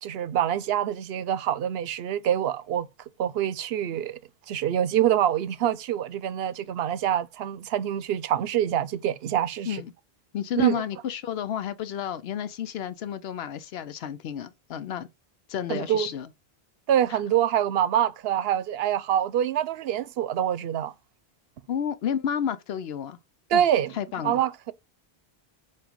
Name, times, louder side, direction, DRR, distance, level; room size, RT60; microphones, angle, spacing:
voice 1, 0.0-2.9 3.2-4.2 4.5-9.8 10.5-10.8 15.7-16.1 16.9-20.9 23.5-23.9 24.2-24.7, right 10 dB, 75° right, 0.8 m, -25 dB
voice 2, 10.3-15.1 15.5-16.3 17.1-17.2 21.7-23.2 23.5-23.6 23.9-24.4, left 9 dB, 80° left, 0.8 m, -31 dB
7.4 x 2.5 x 5.1 m
omnidirectional pair, 1.0 m